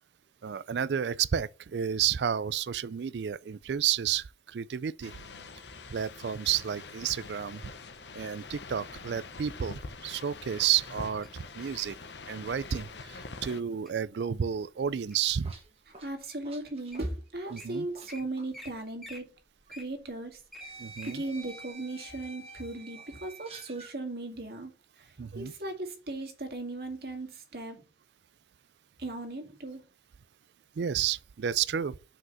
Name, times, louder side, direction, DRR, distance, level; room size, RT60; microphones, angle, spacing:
voice 1, 0.4-5.1 5.9-7.6 8.1-12.0 12.3-15.5 17.5-17.9 20.8-21.2 25.2-25.5 30.8-32.0, right 9 dB, 80° right, 0.4 m, -31 dB
sound 1, 5.0-13.6, left 4 dB, 90° left, 1.0 m, -45 dB
Wild animals, 11.2-12.0 12.7-13.0 13.5-13.9 14.4-15.4 16.0-16.1 16.6-16.7 16.9-17.1 17.3-17.6 18.1-18.2 18.5-18.7 19.0-21.2 21.6-21.7, left 1 dB, ahead, 1.6 m, -48 dB
sound 2, 15.1-18.1 18.4-18.6 19.7-19.8 20.6-23.9, right 2 dB, 35° right, 1.6 m, -49 dB
voice 2, 16.0-19.3 19.7-20.4 21.1-24.7 25.0-27.8 29.0-29.8, right 2 dB, 60° right, 2.2 m, -37 dB
6.2 x 5.0 x 5.7 m
head